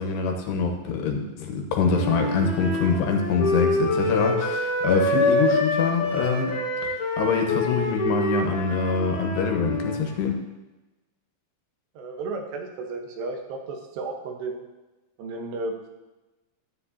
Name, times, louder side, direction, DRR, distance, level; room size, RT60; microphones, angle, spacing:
voice 1, 0.0-6.6 7.2-10.4, left 4 dB, 85° left, 2 dB, 3.3 m, -24 dB
Wind instrument woodwind instrument, 1.8-10.0, left 2 dB, 70° left, 1.2 m, -26 dB
voice 2, 12.0-14.7 15.2-15.9, right 3 dB, 85° right, 2 dB, 3.3 m, -33 dB
13.0 x 9.6 x 2.8 m, 1.1 s
omnidirectional pair, 4.8 m